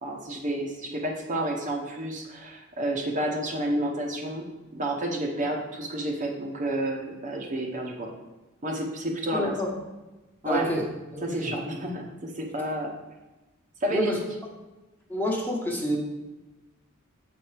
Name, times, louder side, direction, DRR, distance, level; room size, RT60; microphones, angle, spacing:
voice 1, 0.0-4.5 4.7-8.1 8.6-9.5 10.4-10.6 11.2-12.9 13.8-14.1, right 1 dB, 35° right, 0 dB, 0.9 m, -30 dB
voice 2, 9.3-9.7 10.4-10.8 11.1-11.5 13.9-14.2 15.1-16.0, left 1 dB, 10° left, -2 dB, 1.2 m, -28 dB
7.7 x 4.6 x 4.9 m, 1.1 s
head